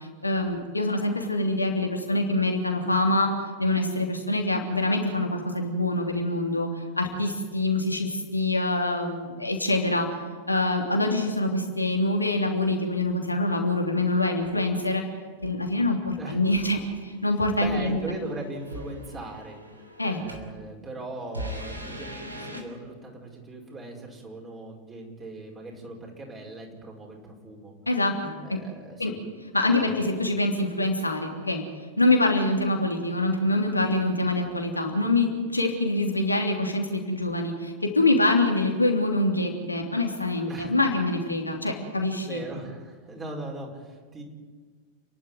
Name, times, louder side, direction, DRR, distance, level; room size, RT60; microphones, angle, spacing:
voice 1, 0.2-3.3 3.6-6.7 7.0-10.1 10.5-15.0 15.4-18.0 20.0-20.2 27.9-28.6 29.0-29.1 29.5-31.6 32.0-42.4, left 2 dB, 85° left, 1 dB, 3.2 m, -25 dB
sound 1, 15.4-15.7 16.5-20.6 21.2-22.6, equal, 80° right, 3.0 m, -41 dB
voice 2, 17.6-19.6 20.1-27.7 28.4-29.2 29.6-29.9 40.5-40.7 42.2-44.2, right 2 dB, 20° right, 0 dB, 5.2 m, -39 dB
30.0 x 11.5 x 9.5 m, 1.5 s
figure-of-eight pair, 90°, 0 cm